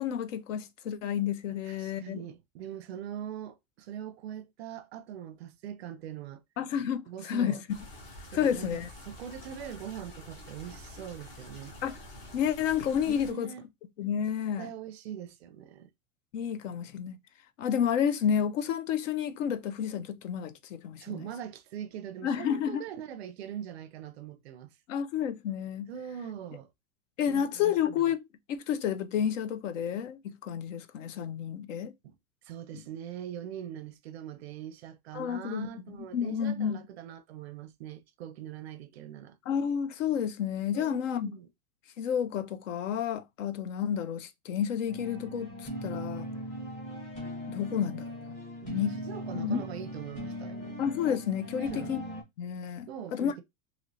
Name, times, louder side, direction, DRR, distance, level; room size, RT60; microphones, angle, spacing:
voice 1, 0.0-2.2 6.6-7.6 8.3-8.9 11.8-12.0 12.3-13.5 14.0-14.7 16.3-17.2 17.6-21.3 22.2-22.8 24.9-25.9 27.2-28.2 28.5-31.9 32.7-32.8 35.1-36.8 39.5-41.3 42.0-46.3 47.5-48.4 48.7-48.9 49.3-49.6 50.8-52.0 52.4-53.3, left 8 dB, 60° left, 0.5 m, -30 dB
voice 2, 1.6-6.4 7.1-7.6 8.3-11.8 13.1-13.7 14.6-15.9 21.0-24.8 25.9-26.7 27.3-28.0 32.0-32.2 32.4-39.4 40.7-41.5 48.6-50.8 51.5-52.0 52.9-53.4, right 10 dB, 50° right, 0.5 m, -42 dB
sound 1, 7.7-13.3, left 1 dB, 35° left, 1.1 m, -47 dB
sound 2, 44.9-52.2, equal, 15° left, 1.2 m, -39 dB
3.0 x 2.9 x 2.7 m
supercardioid pair, 170°, 43 cm